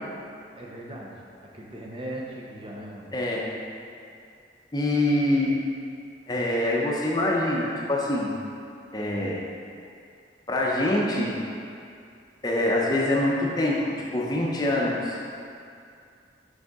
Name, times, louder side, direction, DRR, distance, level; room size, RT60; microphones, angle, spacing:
voice 1, 0.5-1.2 1.5-3.1, right 1 dB, 30° right, -3 dB, 0.7 m, -38 dB
voice 2, 3.1-3.5 4.7-5.6 6.3-8.3 8.9-9.4 10.5-11.4 12.4-15.2, left 1 dB, 20° left, -3 dB, 0.7 m, -25 dB
6.6 x 5.5 x 3.6 m, 2.4 s
head